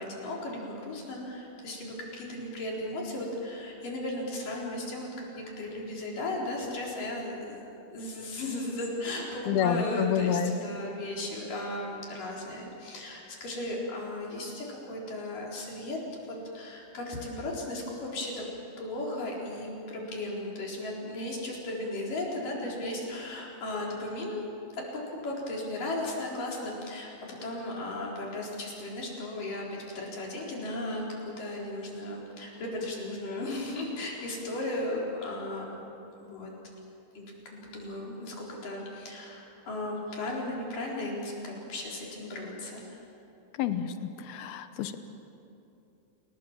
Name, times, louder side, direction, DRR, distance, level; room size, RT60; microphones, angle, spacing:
voice 1, 0.0-18.4 18.8-24.5 25.2-35.8 36.2-36.5 37.2-37.3 37.5-43.0, left 1 dB, 55° left, -3 dB, 5.6 m, -36 dB
voice 2, 9.5-10.5 43.6-43.9 44.3-45.0, left 9 dB, 80° left, 10 dB, 2.8 m, -28 dB
29.5 x 18.0 x 7.3 m, 2.7 s
omnidirectional pair, 4.6 m